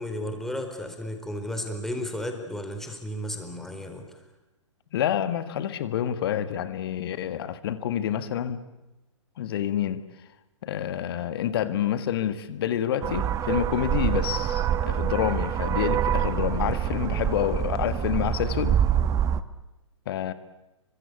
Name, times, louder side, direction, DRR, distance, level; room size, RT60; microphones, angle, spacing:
voice 1, 0.0-4.0, left 1 dB, ahead, 4.3 m, -33 dB
voice 2, 4.9-8.7 9.4-10.0 10.6-18.8 20.1-20.3, left 10 dB, 50° left, 1.8 m, -28 dB
sound 1, 13.0-19.4, right 9 dB, 20° right, 1.1 m, -26 dB
28.0 x 24.5 x 8.4 m
figure-of-eight pair, 125°, 16 cm